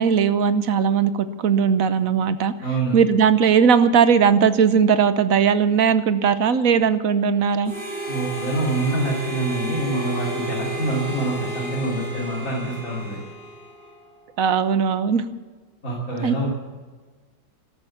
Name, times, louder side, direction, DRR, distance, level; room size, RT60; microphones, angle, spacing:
voice 1, 0.0-2.5 2.9-7.7 14.4-15.2 16.2-16.5, right 7 dB, 60° right, 12 dB, 1.1 m, -18 dB
voice 2, 2.6-3.0 8.1-13.2 15.8-16.5, right 2 dB, 45° left, -5 dB, 3.5 m, -26 dB
Harmonica, 7.6-14.0, right 1 dB, 35° right, 3.7 m, -32 dB
13.5 x 12.5 x 7.2 m, 1.4 s
omnidirectional pair, 1.9 m